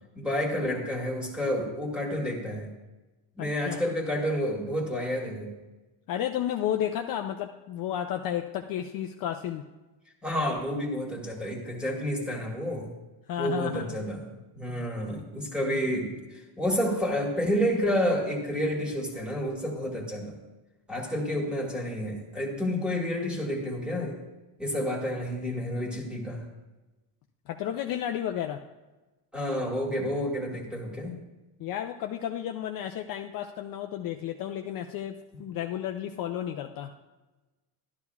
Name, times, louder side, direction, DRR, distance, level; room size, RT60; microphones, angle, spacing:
voice 1, 0.2-2.7 3.4-5.5 10.2-12.9 13.4-14.2 14.6-20.4 20.9-24.2 24.6-26.5 29.3-31.2, equal, ahead, -1 dB, 1.6 m, -30 dB
voice 2, 3.4-3.8 6.1-9.6 13.3-13.9 27.5-28.6 31.6-36.9, left 10 dB, 50° left, 5 dB, 0.5 m, -32 dB
12.0 x 11.5 x 2.3 m, 1.1 s
cardioid pair, 145°, 45 cm